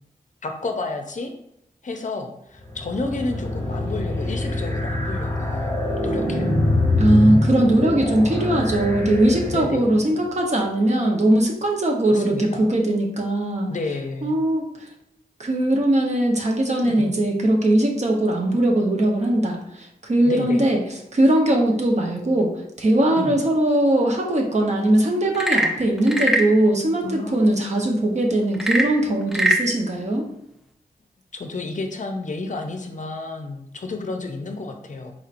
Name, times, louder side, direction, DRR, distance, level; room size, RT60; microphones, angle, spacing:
voice 1, 0.4-1.3 1.8-6.5 9.5-10.0 12.1-12.7 13.7-14.4 16.8-17.1 20.2-20.7 23.2-23.4 27.0-27.6 31.3-35.1, left 3 dB, 50° left, 4 dB, 0.5 m, -31 dB
sound 1, 2.6-10.0, left 1 dB, 15° left, 1.0 m, -24 dB
voice 2, 7.0-13.7 14.2-14.6 15.4-20.8 21.1-22.5 22.8-30.2, right 1 dB, 45° right, 0 dB, 0.8 m, -20 dB
Frog / Percussion / Wood, 25.3-26.6 28.5-29.7, right 1 dB, ahead, 0.4 m, -21 dB
4.3 x 2.9 x 2.5 m, 0.80 s
wide cardioid pair, 75°, 16 cm